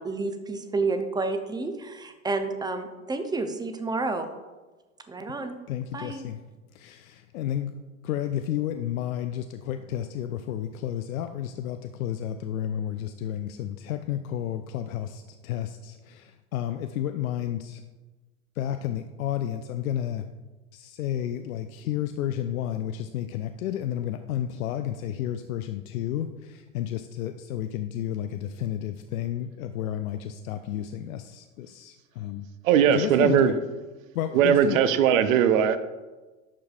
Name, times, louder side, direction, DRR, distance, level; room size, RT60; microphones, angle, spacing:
voice 1, 0.0-4.3 5.1-5.6 5.9-6.3, right 3 dB, 10° right, 0.5 m, -30 dB
voice 2, 5.7-6.4 6.7-7.8 8.0-17.8 18.6-20.3 20.7-32.5 32.9-33.5 34.1-34.8, left 11 dB, 75° left, 0.5 m, -31 dB
voice 3, 32.6-33.5 34.3-35.8, right 9 dB, 70° right, 0.7 m, -19 dB
11.5 x 4.7 x 2.4 m
hypercardioid pair, 85°, 42 cm